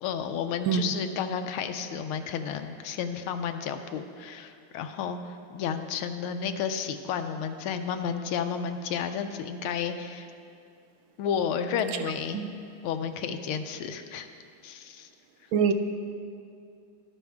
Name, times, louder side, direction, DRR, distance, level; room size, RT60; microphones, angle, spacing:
voice 1, 0.0-10.3 11.2-12.4 12.8-14.3 14.6-15.1, left 7 dB, 80° left, 8 dB, 1.5 m, -32 dB
voice 2, 0.7-0.9 12.3-12.5 15.5-15.7, right 7 dB, 75° right, 8 dB, 1.4 m, -24 dB
12.5 x 11.5 x 3.5 m, 2.5 s
omnidirectional pair, 2.4 m